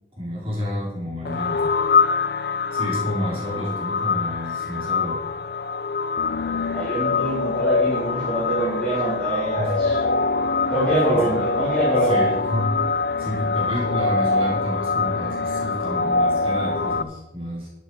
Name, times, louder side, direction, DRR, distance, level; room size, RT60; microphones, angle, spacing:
voice 1, 0.2-1.7 2.7-5.2 9.5-9.7 11.0-11.3 12.0-12.7 13.2-17.7, left 1 dB, 35° right, -6 dB, 4.5 m, -30 dB
sound 1, 1.2-17.0, left 4 dB, 60° left, 0.5 m, -24 dB
voice 2, 6.7-10.0 10.7-12.4, right 2 dB, 5° left, -9 dB, 4.0 m, -24 dB
13.0 x 9.0 x 5.1 m, 1.0 s
head